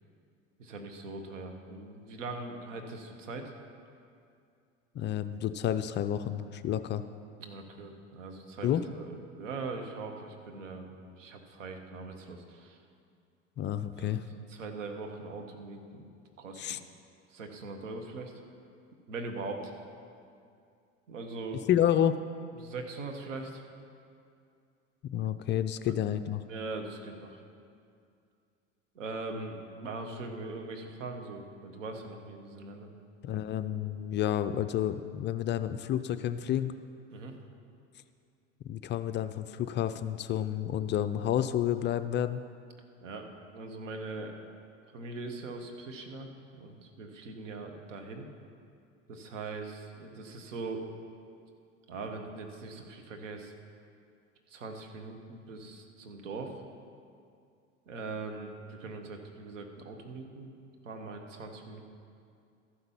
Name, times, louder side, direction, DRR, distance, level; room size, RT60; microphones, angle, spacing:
voice 1, 0.6-3.5 7.4-12.8 14.0-14.2 14.5-16.0 16.4-16.8 17.3-18.3 19.1-19.7 21.1-21.6 22.6-23.6 25.9-26.0 26.5-27.4 28.9-32.9 37.1-37.3 43.0-44.4 44.9-48.3 49.1-50.9 51.9-53.5 54.5-56.6 57.9-60.5 60.8-61.8, right 3 dB, 80° right, 4 dB, 1.3 m, -41 dB
voice 2, 4.9-7.0 8.6-8.8 13.6-14.2 16.6-16.8 21.7-22.2 25.0-26.4 33.2-36.7 38.7-42.4, left 10 dB, 30° left, 11 dB, 0.4 m, -30 dB
13.0 x 5.8 x 7.1 m, 2.4 s
hypercardioid pair, 85°, 37 cm